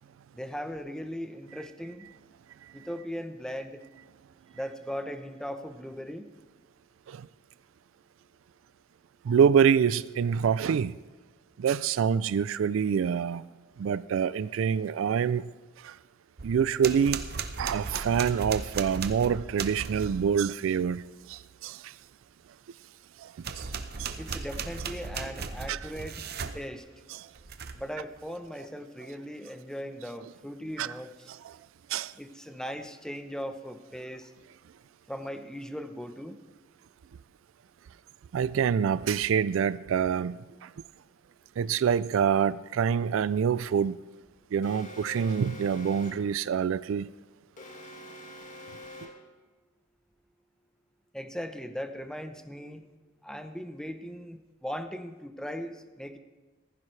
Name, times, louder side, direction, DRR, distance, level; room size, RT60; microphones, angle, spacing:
voice 1, 0.3-2.0 2.7-3.8 4.5-6.3 24.2-26.2 26.5-26.8 27.7-31.3 32.2-34.3 35.1-36.4 51.1-52.8 53.2-56.2, equal, 5° left, 0.7 m, -38 dB
voice 2, 9.2-11.0 11.6-13.4 13.8-15.5 15.8-16.0 16.4-17.2 17.6-21.9 23.2-23.7 24.0-24.1 25.7-25.9 27.1-27.3 30.8-30.9 31.4-31.5 31.9-32.1 38.3-40.7 41.6-44.0 44.5-47.1, right 7 dB, 70° right, 0.3 m, -26 dB
sound 1, 16.4-20.3 23.4-26.6 27.4-27.9, right 5 dB, 50° right, 0.7 m, -36 dB
Alarm, 44.6-46.4 47.6-49.4, left 1 dB, 40° left, 1.5 m, -45 dB
15.5 x 14.5 x 3.2 m
head